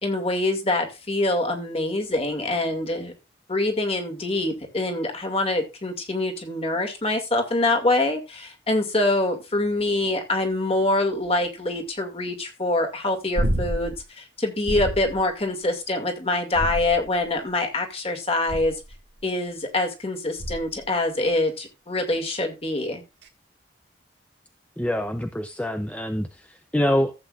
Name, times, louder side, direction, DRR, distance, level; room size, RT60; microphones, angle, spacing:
voice 1, 0.0-3.1 3.5-18.8 19.2-23.0, left 2 dB, 35° left, 2.2 m, -25 dB
sound 1, 13.4-14.0 14.7-15.2 16.5-17.3 18.5-18.9 20.4-20.8 23.2-23.3, equal, 85° right, 1.9 m, -28 dB
voice 2, 24.8-27.1, left 1 dB, 10° left, 0.5 m, -25 dB
15.0 x 8.1 x 2.5 m
head